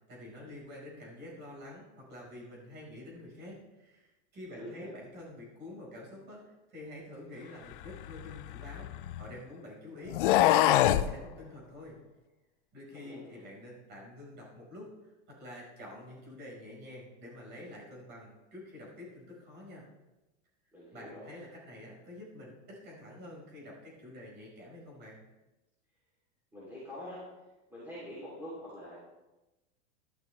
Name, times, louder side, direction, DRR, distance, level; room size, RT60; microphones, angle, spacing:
voice 1, 0.0-8.9 9.2-12.0 12.7-19.8 20.9-25.2, left 1 dB, 30° right, -3 dB, 4.7 m, -48 dB
voice 2, 4.5-4.9 12.9-13.5 20.7-21.3 26.5-27.2 27.7-29.0, left 1 dB, 5° right, -9 dB, 3.0 m, -45 dB
sound 1, 7.8-9.3 10.1-11.1, left 13 dB, 45° left, 0.4 m, -25 dB
12.0 x 11.5 x 3.3 m, 1.0 s
supercardioid pair, 170°, 36 cm